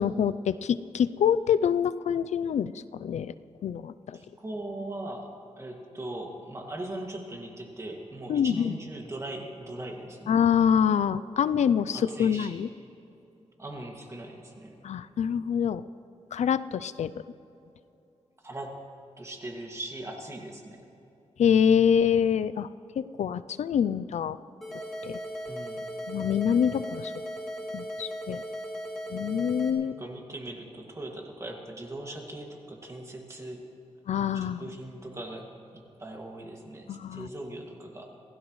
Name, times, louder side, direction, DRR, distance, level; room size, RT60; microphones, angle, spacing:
voice 1, 0.0-3.3 3.6-4.2 8.3-8.7 10.3-12.7 14.8-15.8 16.3-17.1 21.4-22.7 23.0-24.4 25.0-25.2 26.1-27.1 27.7-28.4 29.1-29.9 34.1-34.6 36.9-37.3, left 8 dB, 75° left, 15 dB, 0.4 m, -25 dB
voice 2, 4.1-10.4 11.9-12.6 13.6-14.8 18.4-18.8 19.2-20.8 25.4-25.9 29.8-33.6 34.3-38.1, right 1 dB, 25° right, 1 dB, 2.1 m, -40 dB
sound 1, 24.6-29.7, equal, ahead, 2.4 m, -37 dB
26.5 x 16.5 x 3.2 m, 2.9 s
wide cardioid pair, 160°, 12 cm